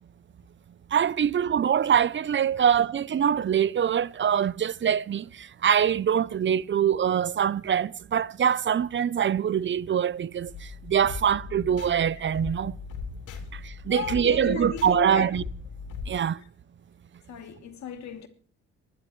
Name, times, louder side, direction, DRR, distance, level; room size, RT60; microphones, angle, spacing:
voice 1, 0.9-10.5 10.8-12.8 13.5-15.4 16.1-16.4, right 8 dB, 40° right, 0.6 m, -24 dB
sound 1, 10.5-16.1, left 5 dB, 85° left, 4.0 m, -39 dB
voice 2, 13.9-15.3 17.3-18.3, left 9 dB, 65° left, 2.9 m, -35 dB
23.0 x 11.5 x 3.1 m
cardioid pair, 90°, 30 cm